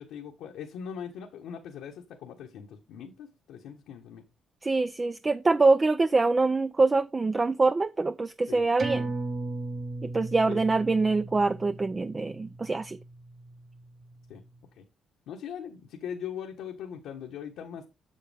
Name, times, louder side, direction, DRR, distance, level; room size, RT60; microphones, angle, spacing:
voice 1, 0.0-4.2 8.5-8.6 10.5-10.6 14.3-14.4 14.7-14.8 15.3-17.9, left 8 dB, 85° left, 1.3 m, -40 dB
voice 2, 4.6-9.0 10.0-13.0, right 3 dB, 25° right, 0.5 m, -24 dB
sound 1, 8.8-13.7 14.1-14.2, right 2 dB, 55° right, 2.3 m, -36 dB
7.8 x 7.2 x 3.5 m
cardioid pair, 90°, 0 cm